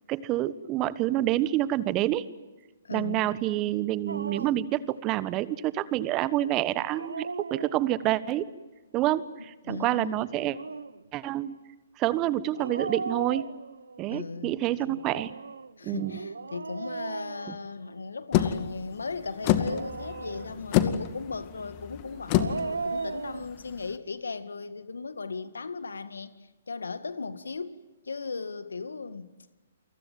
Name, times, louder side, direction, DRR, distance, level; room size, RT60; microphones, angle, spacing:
voice 1, 0.1-2.2 2.9-8.4 8.9-10.6 11.1-11.5 12.0-13.5 14.0-15.3 15.8-16.1, right 14 dB, 30° right, 1.3 m, -28 dB
voice 2, 2.8-3.3 9.4-10.2 14.1-15.0 15.8-26.3 26.7-27.8 28.0-29.3, left 4 dB, 80° left, 2.0 m, -37 dB
Dog, 4.1-4.7 6.8-8.2 10.3-11.0 12.5-14.0 14.9-18.1 19.4-20.8 22.1-23.5, right 4 dB, 85° right, 1.0 m, -37 dB
sound 1, 18.3-23.9, left 12 dB, 35° left, 2.2 m, -29 dB
29.5 x 24.0 x 7.8 m
hypercardioid pair, 130°, 0 cm